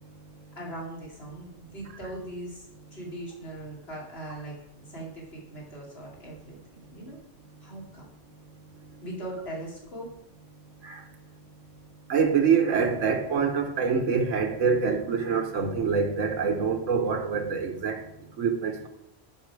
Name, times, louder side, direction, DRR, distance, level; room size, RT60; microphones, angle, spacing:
voice 1, 0.0-0.6 7.6-7.7 8.3-9.0 10.8-11.3 11.6-11.7 12.1-18.0 18.3-18.9, right 6 dB, 85° right, 5 dB, 1.4 m, -26 dB
voice 2, 0.6-4.6 4.9-7.2 7.6-8.1 9.0-10.1, right 1 dB, 55° left, -3 dB, 2.8 m, -40 dB
11.0 x 5.4 x 4.7 m, 0.83 s
omnidirectional pair, 1.3 m